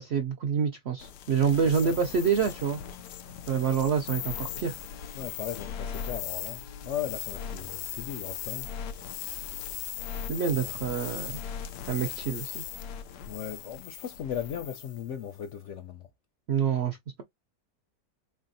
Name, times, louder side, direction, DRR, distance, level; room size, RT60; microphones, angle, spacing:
voice 1, 0.0-2.8 3.5-4.8 10.3-11.4 11.9-12.6 16.5-17.2, right 6 dB, 70° right, 0.6 m, -27 dB
sound 1, 1.0-15.0, left 9 dB, 85° left, 1.2 m, -38 dB
voice 2, 5.2-8.7 10.6-10.7 13.3-16.1, left 9 dB, 70° left, 0.7 m, -37 dB
3.8 x 3.3 x 2.6 m
omnidirectional pair, 1.7 m